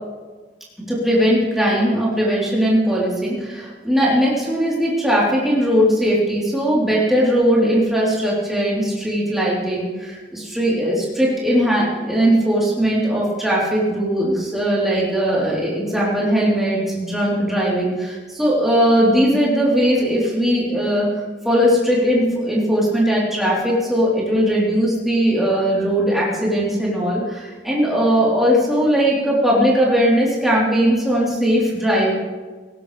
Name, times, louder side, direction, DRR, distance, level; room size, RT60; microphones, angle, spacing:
voice 1, 0.9-21.2 21.4-32.2, equal, ahead, -7 dB, 3.7 m, -19 dB
18.0 x 17.5 x 3.4 m, 1.3 s
head